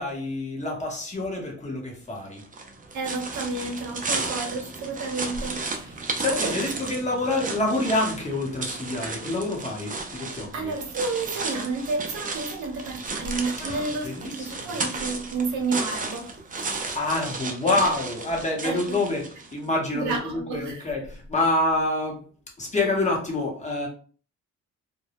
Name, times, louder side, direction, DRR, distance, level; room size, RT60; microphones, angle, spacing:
voice 1, 0.0-2.4 6.2-10.7 13.6-14.8 16.9-19.2 19.5-22.2 22.6-23.9, left 2 dB, 25° left, 0.9 m, -27 dB
sound 1, 2.4-19.6, right 3 dB, 25° right, 0.5 m, -34 dB
voice 2, 2.9-6.0 6.3-6.6 10.5-16.9 18.6-19.0 19.9-20.9, right 3 dB, 70° right, 0.8 m, -31 dB
2.2 x 2.0 x 2.8 m
cardioid pair, 90°, 30 cm